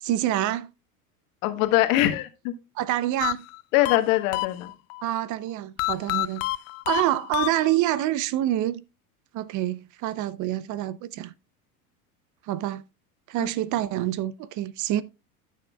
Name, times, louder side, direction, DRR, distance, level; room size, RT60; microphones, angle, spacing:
voice 1, 0.0-0.7 2.8-3.4 5.0-6.4 6.9-8.8 9.3-11.3 12.5-12.8 13.3-15.0, right 13 dB, 45° right, 0.6 m, -26 dB
voice 2, 1.4-2.5 3.7-4.7 13.4-13.5, left 15 dB, 65° left, 1.5 m, -22 dB
sound 1, 3.2-5.0 5.8-8.1, left 20 dB, 40° left, 0.4 m, -29 dB
14.0 x 6.4 x 2.3 m
hypercardioid pair, 95°, 44 cm